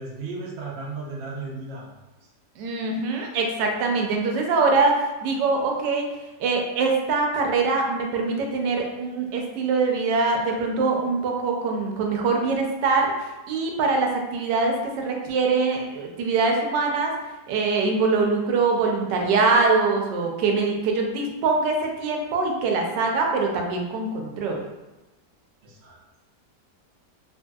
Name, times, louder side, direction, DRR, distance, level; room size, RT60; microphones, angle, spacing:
voice 1, 0.0-2.0 25.6-26.0, right 3 dB, 70° right, -2 dB, 0.6 m, -35 dB
voice 2, 2.6-6.1 6.4-13.1 13.5-17.1 17.5-24.6, right 4 dB, 85° right, 1 dB, 1.2 m, -23 dB
3.2 x 2.6 x 2.2 m, 1.1 s
omnidirectional pair, 1.8 m